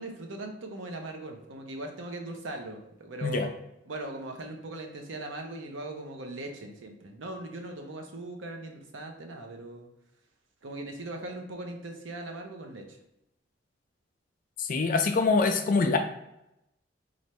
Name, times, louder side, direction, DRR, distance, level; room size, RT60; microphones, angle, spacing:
voice 1, 0.0-3.5 3.9-9.9 10.6-13.0, right 2 dB, 80° right, 3 dB, 0.7 m, -39 dB
voice 2, 14.6-16.0, left 4 dB, 45° left, 5 dB, 0.3 m, -24 dB
3.2 x 2.5 x 4.2 m, 0.86 s
head